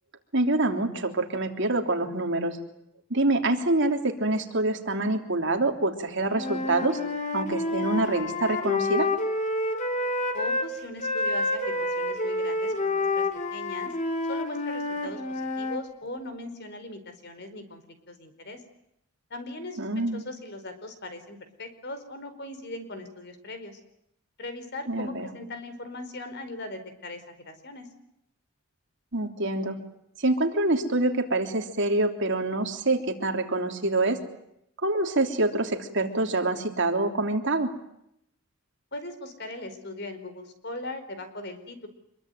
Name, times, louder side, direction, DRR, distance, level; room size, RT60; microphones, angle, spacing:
voice 1, 0.3-2.6 3.1-7.0 7.3-9.1 19.8-20.2 24.9-25.3 29.1-29.8 30.2-34.2 34.8-37.7, right 2 dB, 55° right, 4 dB, 3.4 m, -26 dB
Wind instrument woodwind instrument, 6.3-10.7 11.0-15.8, left 2 dB, 35° left, 3.3 m, -28 dB
voice 2, 10.3-13.9 14.3-17.8 18.1-18.6 19.3-23.8 24.4-27.9 38.9-41.9, left 2 dB, 50° left, 9 dB, 4.7 m, -39 dB
26.5 x 23.0 x 9.3 m, 0.78 s
head